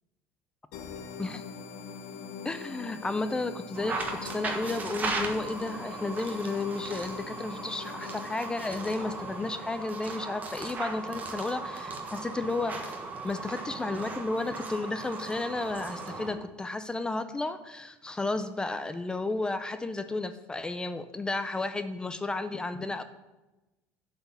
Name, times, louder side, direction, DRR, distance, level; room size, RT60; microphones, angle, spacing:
sound 1, 0.7-10.1, left 5 dB, 75° left, 0.9 m, -43 dB
voice 1, 2.4-12.8 13.2-23.0, left 2 dB, 15° left, 11 dB, 0.4 m, -33 dB
sound 2, 3.7-16.4, right 3 dB, 25° right, 1.3 m, -37 dB
7.8 x 4.5 x 7.0 m, 1.1 s
cardioid pair, 125°, 6 cm